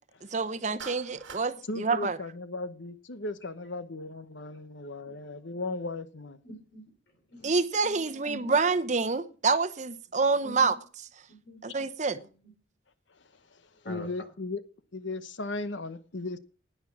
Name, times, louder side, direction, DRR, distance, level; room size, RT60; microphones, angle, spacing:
voice 1, 0.3-2.2 7.4-10.8 11.6-12.2, right 4 dB, 40° right, 0.8 m, -27 dB
Clapping, 0.8-1.5, right 6 dB, 90° right, 1.6 m, -44 dB
voice 2, 1.7-6.4 11.7-11.8 13.5-14.6 14.9-16.4, left 2 dB, 80° left, 1.0 m, -36 dB
voice 3, 6.4-6.8 7.3-7.6 7.8-8.5 10.4-10.8 11.3-11.6 12.1-12.5 13.8-14.1, equal, 60° left, 3.4 m, -45 dB
11.0 x 9.4 x 5.9 m
head